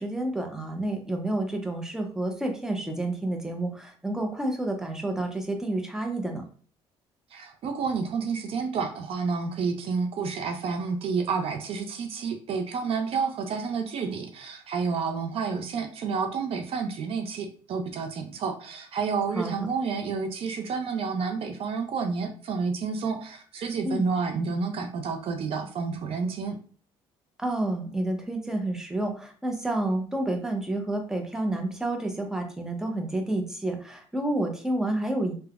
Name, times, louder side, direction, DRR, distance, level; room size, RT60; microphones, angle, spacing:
voice 1, 0.0-6.4 19.3-19.5 23.8-24.0 27.4-35.3, right 1 dB, 5° right, 3 dB, 0.6 m, -29 dB
voice 2, 7.3-26.6, right 5 dB, 60° right, 5 dB, 0.5 m, -30 dB
3.2 x 2.1 x 2.4 m, 0.42 s
cardioid pair, 90°, 11 cm